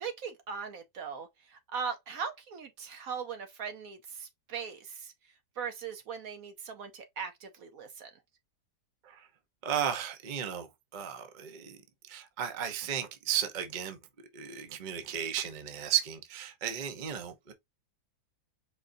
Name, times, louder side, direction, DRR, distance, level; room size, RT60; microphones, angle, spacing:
voice 1, 0.0-5.1 5.6-8.1, right 6 dB, 65° right, 1.1 m, -39 dB
voice 2, 9.6-11.8 12.1-14.0 14.3-17.5, right 9 dB, 40° right, 0.8 m, -34 dB
5.1 x 3.7 x 2.6 m
omnidirectional pair, 1.7 m